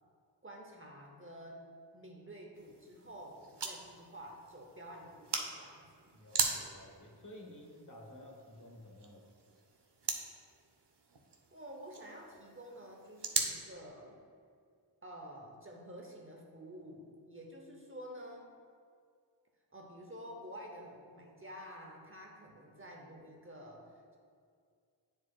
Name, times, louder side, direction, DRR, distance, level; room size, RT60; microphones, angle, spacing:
voice 1, 0.4-6.1 11.5-14.2 15.0-18.5 19.7-24.2, equal, 30° right, 0 dB, 0.7 m, -50 dB
sound 1, 2.5-13.5, right 4 dB, 65° right, 0.7 m, -41 dB
voice 2, 6.1-9.3, left 1 dB, 45° left, -1 dB, 1.1 m, -53 dB
9.5 x 4.5 x 2.3 m, 2.2 s
wide cardioid pair, 60°, 45 cm